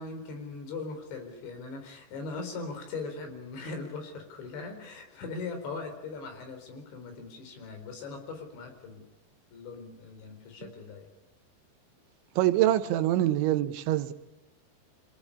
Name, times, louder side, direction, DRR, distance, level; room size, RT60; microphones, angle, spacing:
voice 1, 0.0-9.0 9.5-11.1, left 4 dB, 75° left, 6.4 m, -40 dB
voice 2, 12.4-14.1, right 13 dB, 85° right, 3.4 m, -25 dB
25.5 x 18.5 x 9.9 m
omnidirectional pair, 5.2 m